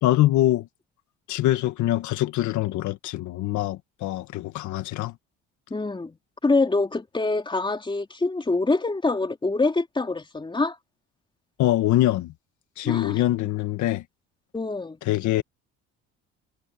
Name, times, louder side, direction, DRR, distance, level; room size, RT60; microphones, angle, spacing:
voice 1, 0.0-0.7 1.3-5.2 11.6-12.3 12.8-14.0 15.0-15.4, left 15 dB, 75° left, 1.7 m, -24 dB
voice 2, 5.7-6.2 6.4-10.8 12.8-13.2 14.5-15.0, left 3 dB, 15° left, 3.3 m, -25 dB
cardioid pair, 105°, 30 cm